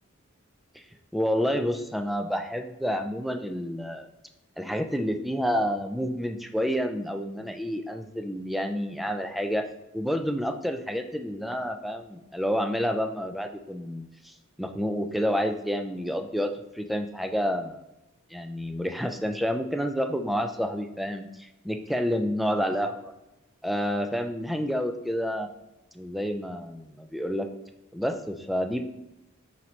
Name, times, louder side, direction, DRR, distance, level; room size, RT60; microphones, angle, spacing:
voice 1, 1.1-4.1 4.6-9.6 9.9-17.8 18.3-23.1 23.6-25.5 25.9-27.5 27.9-28.8, equal, ahead, 5 dB, 0.3 m, -29 dB
5.6 x 5.3 x 3.2 m, 0.95 s
head